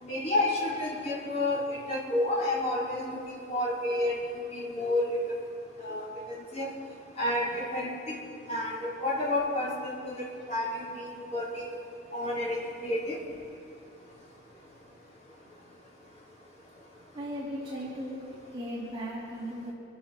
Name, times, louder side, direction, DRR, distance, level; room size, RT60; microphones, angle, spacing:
voice 1, 0.0-5.2 5.8-6.7 7.2-8.2 8.5-11.8 12.1-13.2, left 1 dB, 35° left, -6 dB, 4.2 m, -30 dB
voice 2, 17.1-18.3 18.5-19.7, equal, 25° right, -7 dB, 2.8 m, -37 dB
25.5 x 12.5 x 4.5 m, 2.5 s
head